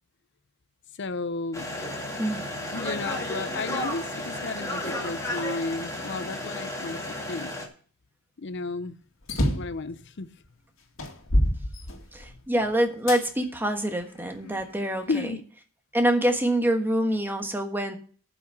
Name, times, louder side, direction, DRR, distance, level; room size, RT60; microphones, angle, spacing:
voice 1, 1.0-1.7 2.7-7.0 7.3-7.5 8.4-9.0 9.3-10.3 15.1-15.4, left 3 dB, 60° left, 0.7 m, -33 dB
sound 1, 1.5-7.6, left 1 dB, 15° left, 2.3 m, -33 dB
sound 2, 9.2-9.8 10.4-10.5 11.0-12.4 13.1-13.2 13.9-15.0, equal, 90° left, 2.1 m, -27 dB
voice 2, 12.1-15.3 15.9-18.0, right 1 dB, 10° right, 1.3 m, -25 dB
10.0 x 6.3 x 7.7 m
head